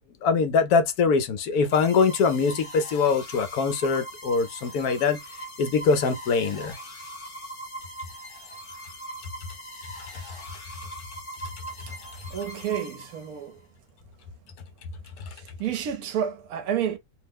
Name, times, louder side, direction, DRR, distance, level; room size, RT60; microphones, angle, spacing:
voice 1, 0.2-5.2 5.6-6.8, left 5 dB, 75° left, 1.1 m, -23 dB
sound 1, 1.7-13.5, right 1 dB, 40° left, 0.9 m, -41 dB
voice 2, 12.3-13.6 15.3-17.0, right 9 dB, 75° right, 1.0 m, -30 dB
2.8 x 2.0 x 3.3 m
omnidirectional pair, 1.7 m